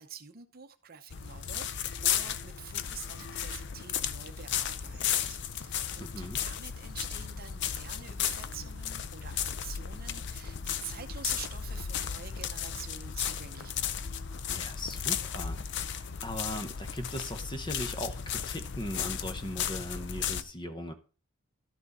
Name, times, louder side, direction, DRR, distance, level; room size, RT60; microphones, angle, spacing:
voice 1, 0.0-14.1, right 8 dB, 45° right, 0.7 m, -47 dB
sound 1, 1.1-20.4, left 8 dB, 55° left, 0.5 m, -35 dB
voice 2, 6.0-6.4 14.5-20.9, left 1 dB, 20° left, 0.9 m, -39 dB
12.5 x 6.1 x 4.1 m
head